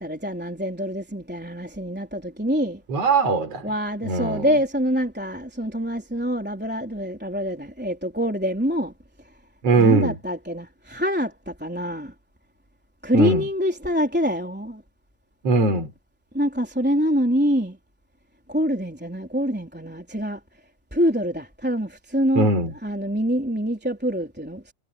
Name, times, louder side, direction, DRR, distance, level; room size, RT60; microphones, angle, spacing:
voice 1, 0.0-2.8 3.6-8.9 9.8-12.1 13.0-14.8 16.3-17.8 18.5-20.4 20.9-22.5 22.8-24.7, equal, 5° right, 3.3 m, -25 dB
voice 2, 2.9-3.6 4.0-4.4 9.6-10.1 13.1-13.4 15.4-15.9 22.4-22.7, right 3 dB, 50° right, 5.3 m, -20 dB
omnidirectional pair, 3.6 m